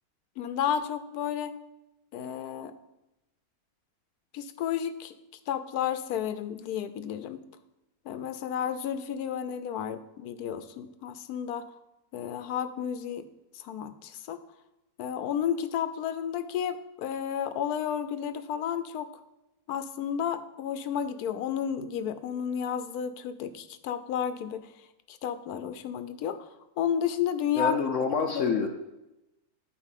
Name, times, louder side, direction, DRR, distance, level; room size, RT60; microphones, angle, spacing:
voice 1, 0.4-1.5 2.1-2.7 4.3-5.1 5.5-7.4 8.1-11.7 12.1-13.3 13.5-14.4 15.0-19.1 19.7-24.7 25.1-26.5 26.8-27.8 28.3-28.7, left 8 dB, 90° left, 12 dB, 1.2 m, -32 dB
voice 2, 27.5-28.7, left 5 dB, 60° left, 4 dB, 1.0 m, -27 dB
9.0 x 4.3 x 7.3 m, 0.95 s
omnidirectional pair, 1.6 m